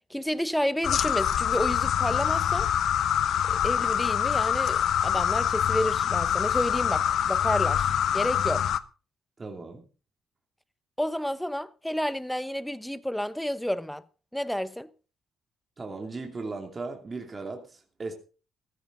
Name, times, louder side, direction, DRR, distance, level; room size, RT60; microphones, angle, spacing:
voice 1, 0.1-2.7 3.5-8.6 11.0-14.0 14.3-14.9, equal, 5° left, 1.0 m, -30 dB
sound 1, 0.8-8.8, left 9 dB, 70° left, 0.9 m, -25 dB
voice 2, 9.4-9.8 15.8-18.1, right 3 dB, 30° right, 2.8 m, -37 dB
15.0 x 14.5 x 3.9 m
cardioid pair, 90°, 0 cm